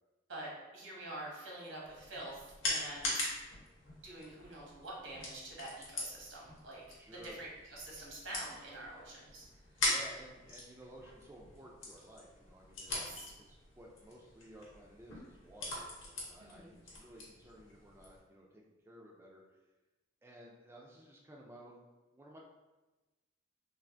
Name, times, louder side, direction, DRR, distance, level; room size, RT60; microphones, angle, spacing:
voice 1, 0.3-3.3 4.0-6.8 7.1-9.4 9.8-9.9 12.9-13.3 16.4-16.7, right 1 dB, 90° right, -4 dB, 1.0 m, -46 dB
sound 1, 1.8-18.2, left 2 dB, 90° left, 0.9 m, -42 dB
voice 2, 7.0-7.4 9.9-19.4 20.2-21.8 22.1-22.4, equal, 15° right, -2 dB, 0.3 m, -55 dB
3.3 x 2.4 x 2.5 m, 1.1 s
head